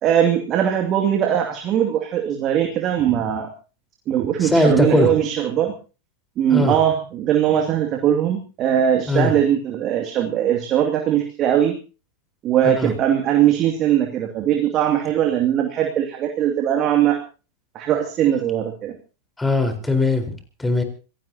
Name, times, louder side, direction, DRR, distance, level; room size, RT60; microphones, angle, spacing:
voice 1, 0.0-3.5 4.1-5.7 6.4-11.8 12.4-17.2 17.7-18.9, right 10 dB, 40° right, 3 dB, 2.5 m, -20 dB
voice 2, 4.4-5.1 6.5-6.8 9.1-9.3 12.6-12.9 19.4-20.8, left 2 dB, 10° left, 6 dB, 4.4 m, -20 dB
26.5 x 17.5 x 2.9 m, 0.35 s
hypercardioid pair, 95°, 0 cm